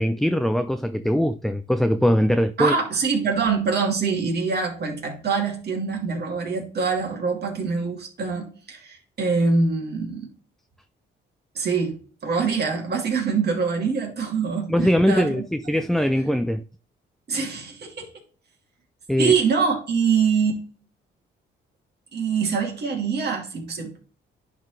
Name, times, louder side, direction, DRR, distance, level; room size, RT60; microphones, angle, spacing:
voice 1, 0.0-2.7 14.7-16.6 19.1-19.4, equal, ahead, 0.4 m, -21 dB
voice 2, 2.6-10.3 11.5-15.4 17.3-18.1 19.2-20.6 22.1-24.0, right 5 dB, 55° right, 2.6 m, -24 dB
10.5 x 4.0 x 3.2 m
cardioid pair, 90°, 20 cm